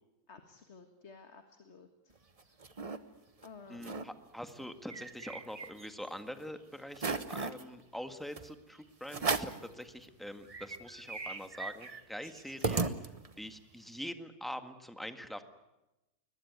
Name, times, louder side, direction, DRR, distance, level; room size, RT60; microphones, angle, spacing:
voice 1, 0.3-2.2 2.4-2.6 3.4-4.0, left 4 dB, 45° left, 7 dB, 1.9 m, -54 dB
sound 1, 2.2-3.0 3.4-3.5 3.7-4.1 4.5-6.1 6.5-6.6 6.9-7.6 8.4-8.5 9.1-9.7 10.1-10.2 10.5-13.5, right 3 dB, 25° right, 1.0 m, -37 dB
voice 2, 3.7-13.1 13.4-15.4, equal, ahead, 8 dB, 1.6 m, -44 dB
22.0 x 21.0 x 9.5 m, 0.96 s
omnidirectional pair, 1.7 m